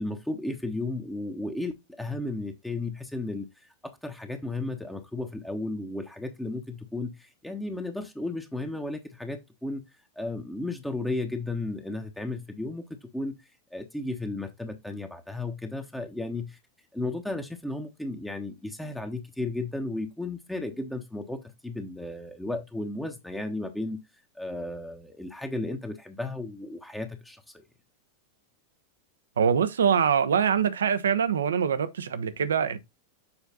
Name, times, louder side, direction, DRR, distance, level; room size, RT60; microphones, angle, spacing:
voice 1, 0.0-9.8 10.2-13.4 13.7-16.6 16.9-24.0 24.3-27.6, left 2 dB, 5° left, 1.1 m, -34 dB
voice 2, 29.4-32.8, right 7 dB, 65° right, 0.9 m, -24 dB
7.1 x 4.5 x 4.0 m
figure-of-eight pair, 90°, 0 cm